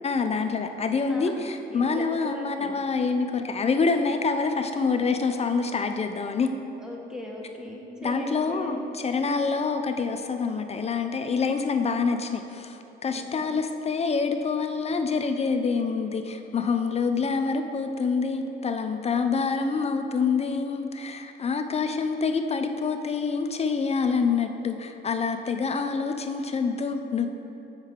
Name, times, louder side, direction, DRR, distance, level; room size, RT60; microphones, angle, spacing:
voice 1, 0.0-6.5 8.0-27.3, left 5 dB, 30° left, 7 dB, 0.4 m, -26 dB
voice 2, 1.7-2.8 6.8-8.9 13.1-13.4, left 1 dB, 5° right, -2 dB, 1.1 m, -38 dB
7.3 x 5.5 x 3.6 m, 2.9 s
cardioid pair, 90°, 20 cm